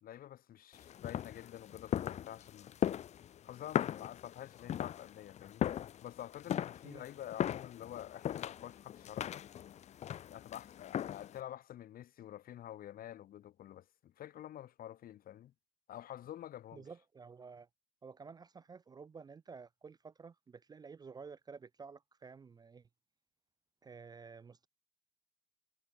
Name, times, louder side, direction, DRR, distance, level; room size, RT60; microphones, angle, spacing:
voice 1, 0.0-2.7 3.4-5.7 6.0-9.4 10.3-15.5 15.9-16.8, left 12 dB, 60° left, 1.5 m, -48 dB
sound 1, 0.7-11.4, left 10 dB, 40° left, 0.5 m, -39 dB
voice 2, 16.7-17.7 18.0-22.9 23.8-24.7, right 5 dB, 25° right, 0.4 m, -52 dB
cardioid pair, 110°, 17 cm